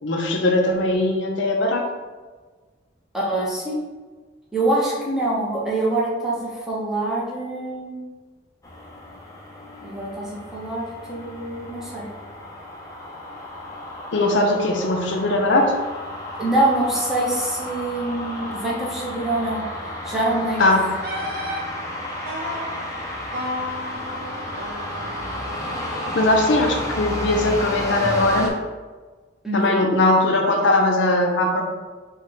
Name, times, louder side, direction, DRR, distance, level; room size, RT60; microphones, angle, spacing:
voice 1, 0.0-1.8 14.1-15.7 20.6-20.8 26.1-28.5 29.5-31.6, left 2 dB, 80° left, 2 dB, 0.6 m, -20 dB
voice 2, 3.1-3.8 4.5-8.0 9.8-12.1 16.4-19.6 20.0-20.7 29.4-29.9, right 2 dB, ahead, -6 dB, 0.9 m, -25 dB
sound 1, 8.6-28.5, left 1 dB, 20° left, 0.7 m, -32 dB
Wind instrument woodwind instrument, 20.6-21.7 22.3-22.7 23.3-26.3, left 1 dB, 55° right, 0.9 m, -32 dB
5.3 x 2.4 x 4.0 m, 1.3 s
head